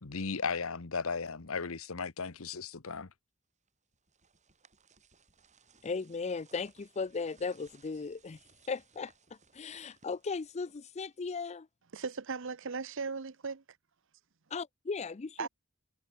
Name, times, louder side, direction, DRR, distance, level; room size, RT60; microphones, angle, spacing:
voice 1, 0.0-3.1, left 5 dB, 80° left, 1.2 m, -36 dB
sound 1, 3.7-11.5, right 5 dB, 35° right, 6.2 m, -65 dB
voice 2, 5.8-8.4 8.7-9.1 9.5-11.7 14.5-15.5, left 4 dB, 30° left, 0.5 m, -37 dB
voice 3, 11.9-13.6 15.4-15.5, right 5 dB, 65° right, 0.9 m, -37 dB
head